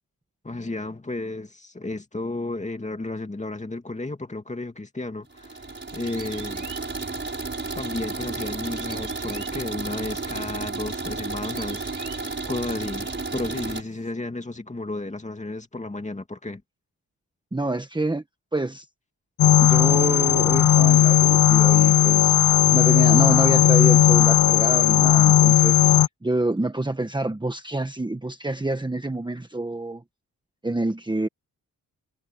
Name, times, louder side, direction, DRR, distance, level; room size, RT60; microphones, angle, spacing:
voice 1, 0.4-6.7 7.7-16.6, left 2 dB, 20° left, 2.5 m, -33 dB
sound 1, 5.3-13.8, right 3 dB, 30° right, 5.7 m, -32 dB
sound 2, 5.9-14.1, right 6 dB, 55° right, 4.6 m, -48 dB
voice 2, 17.5-18.2 18.5-18.9 19.6-22.4 22.7-30.0 30.6-31.3, right 2 dB, 10° right, 1.3 m, -27 dB
sound 3, 19.4-26.1, left 10 dB, 65° left, 0.7 m, -16 dB
wide cardioid pair, 100°, 37 cm